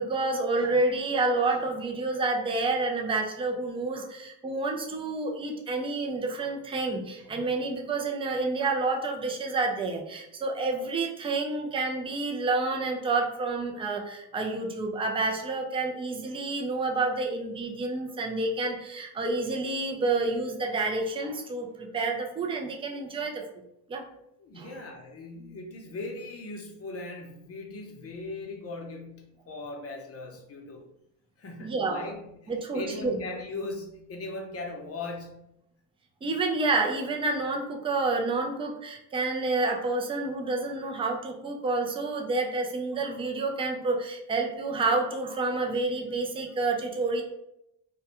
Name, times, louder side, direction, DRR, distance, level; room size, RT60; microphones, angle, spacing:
voice 1, 0.0-23.4 23.9-24.0 24.6-24.7 31.6-32.1 32.5-33.2 36.2-47.2, right 3 dB, 15° right, 1 dB, 0.3 m, -29 dB
voice 2, 24.4-30.8 31.4-35.5, left 2 dB, 35° left, 2 dB, 0.6 m, -39 dB
2.2 x 2.2 x 2.8 m, 0.82 s
supercardioid pair, 85°, 43 cm